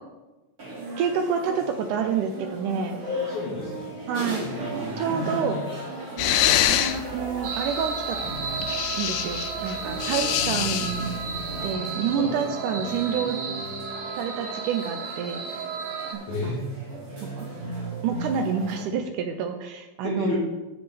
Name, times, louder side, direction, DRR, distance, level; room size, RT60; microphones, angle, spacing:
sound 1, 0.6-18.8, right 2 dB, 30° right, 2.3 m, -36 dB
voice 1, 1.0-3.0 4.1-4.5 5.0-5.7 6.7-8.2 8.9-11.1 11.6-13.4 14.2-15.6 16.1-16.6 17.4-17.5 18.0-20.3, right 7 dB, 80° right, 6 dB, 1.9 m, -28 dB
voice 2, 3.0-3.9 12.1-12.4 16.3-16.6 20.0-20.3, left 3 dB, 60° left, -6 dB, 3.1 m, -30 dB
sound 2, 6.2-11.7, left 11 dB, 80° left, 2.1 m, -27 dB
sound 3, 7.4-16.1, right 5 dB, 65° right, 1.8 m, -34 dB
10.0 x 8.0 x 3.4 m, 1.1 s
omnidirectional pair, 4.1 m